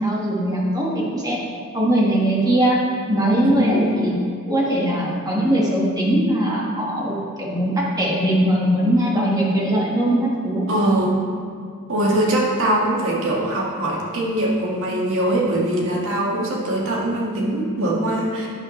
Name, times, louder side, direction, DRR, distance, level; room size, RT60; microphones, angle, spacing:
voice 1, 0.0-1.4 1.7-2.8 3.1-4.2 4.5-10.7, right 1 dB, 15° right, -4 dB, 1.6 m, -20 dB
voice 2, 3.4-3.9 10.7-11.2 11.9-18.5, right 1 dB, 65° right, -3 dB, 1.9 m, -22 dB
11.0 x 10.0 x 3.2 m, 2.3 s
head